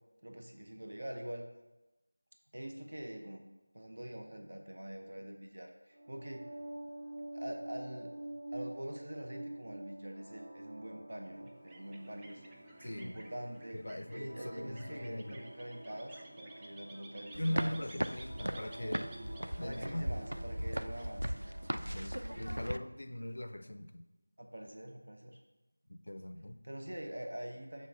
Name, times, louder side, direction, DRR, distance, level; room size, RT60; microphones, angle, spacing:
voice 1, 0.2-1.5 2.5-3.4 3.7-6.5 7.3-8.1 8.5-12.4 12.9-13.8 14.1-17.8 19.6-21.5 24.4-25.4 26.6-27.9, right 1 dB, 60° right, 3 dB, 0.7 m, -45 dB
sound 1, 5.9-21.9, right 1 dB, 40° right, 1.6 m, -49 dB
sound 2, 11.4-21.8, right 1 dB, 10° right, 0.3 m, -55 dB
voice 2, 12.8-13.2 13.7-15.4 17.4-20.1 21.8-24.0 25.9-26.6, left 1 dB, 60° left, 9 dB, 0.4 m, -41 dB
sound 3, 17.3-22.8, equal, 90° right, 0.3 m, -38 dB
6.4 x 3.4 x 5.2 m, 1.0 s
figure-of-eight pair, 175°, 0 cm